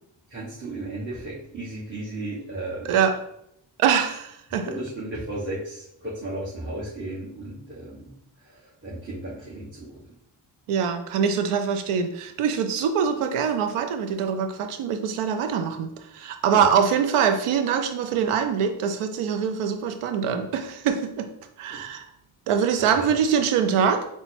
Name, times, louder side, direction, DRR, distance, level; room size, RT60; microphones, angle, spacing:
voice 1, 0.3-3.0 4.7-10.0 16.5-16.6 21.7-21.8 22.8-23.1, right 1 dB, 25° right, -9 dB, 1.5 m, -35 dB
voice 2, 2.8-3.2 3.8-4.7 10.7-21.3 21.6-22.1 22.5-24.1, right 7 dB, 85° right, 7 dB, 0.6 m, -24 dB
4.0 x 2.2 x 4.3 m, 0.77 s
cardioid pair, 50°, 50 cm